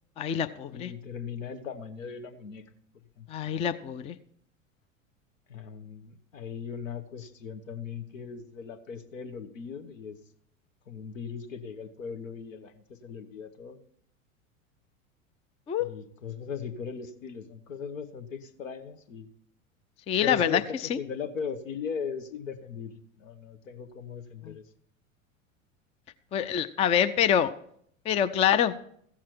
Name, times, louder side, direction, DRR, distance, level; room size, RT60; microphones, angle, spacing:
voice 1, 0.2-0.9 3.3-4.2 15.7-15.9 20.1-20.6 20.9-21.0 24.4-24.5 26.3-27.5 28.1-28.7, left 9 dB, 15° left, 11 dB, 0.4 m, -25 dB
voice 2, 0.7-2.6 3.2-3.3 5.5-10.2 10.9-13.8 15.8-19.3 20.2-24.6, left 6 dB, 70° left, 9 dB, 1.2 m, -38 dB
14.5 x 7.4 x 4.5 m, 0.65 s
figure-of-eight pair, 85°, 40 cm